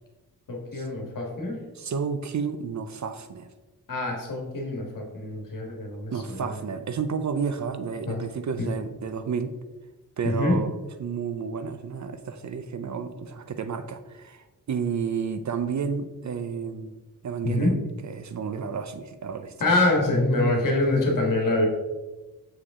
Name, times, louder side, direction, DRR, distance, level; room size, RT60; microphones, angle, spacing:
voice 1, 0.5-1.6 3.9-6.5 8.1-8.2 8.6-8.7 10.2-10.6 17.4-17.7 19.6-21.7, left 2 dB, 55° left, 0 dB, 1.6 m, -25 dB
voice 2, 1.8-3.5 6.1-9.5 10.2-10.7 11.0-16.9 17.2-19.5, right 6 dB, 50° right, 10 dB, 0.5 m, -31 dB
6.6 x 4.9 x 3.6 m, 1.2 s
wide cardioid pair, 125°, 38 cm